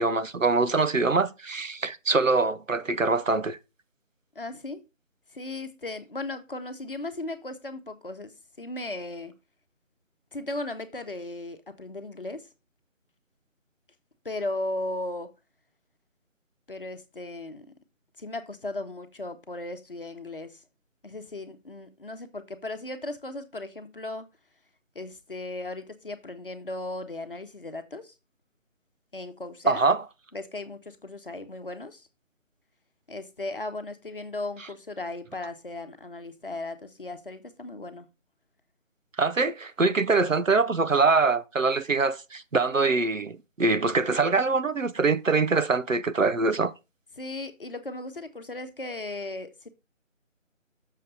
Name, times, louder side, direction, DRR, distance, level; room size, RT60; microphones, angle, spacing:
voice 1, 0.0-3.6 29.7-30.0 39.2-46.7, right 3 dB, 75° right, 1.0 m, -24 dB
voice 2, 4.3-4.8 5.3-9.3 10.3-12.5 14.2-15.3 16.7-17.7 18.2-20.6 21.0-24.3 24.9-28.1 29.1-29.8 30.3-32.1 33.1-38.1 47.2-49.7, left 2 dB, 45° left, 1.1 m, -36 dB
6.7 x 6.5 x 3.9 m
figure-of-eight pair, 160°, 39 cm